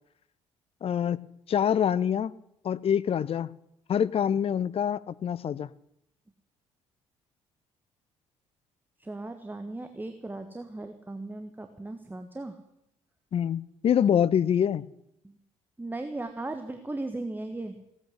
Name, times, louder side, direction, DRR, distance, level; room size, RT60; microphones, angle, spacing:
voice 1, 0.8-2.3 2.6-3.5 3.9-5.7 13.3-14.8, left 8 dB, 35° left, 19 dB, 0.7 m, -25 dB
voice 2, 9.0-12.6 15.2-15.4 15.8-17.7, right 2 dB, 10° right, 7 dB, 1.5 m, -37 dB
16.5 x 8.9 x 9.7 m, 0.81 s
figure-of-eight pair, 50°, 16 cm